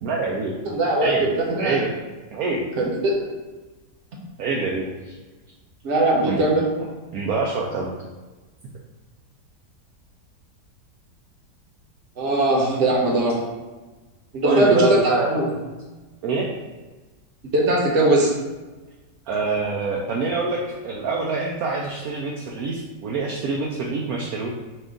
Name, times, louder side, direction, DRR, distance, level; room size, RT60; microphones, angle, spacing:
voice 1, 0.0-0.5 1.0-1.3 1.6-1.9 2.3-2.6 4.4-5.2 6.2-6.4 7.1-7.9 14.5-15.3 16.2-16.5 19.3-24.5, right 4 dB, 70° right, -1 dB, 0.9 m, -25 dB
voice 2, 0.6-1.8 2.8-3.2 5.8-6.7 12.2-13.4 14.3-15.5 17.5-18.3, right 2 dB, 50° right, -2 dB, 1.0 m, -20 dB
5.1 x 2.4 x 3.6 m, 1.2 s
omnidirectional pair, 1.9 m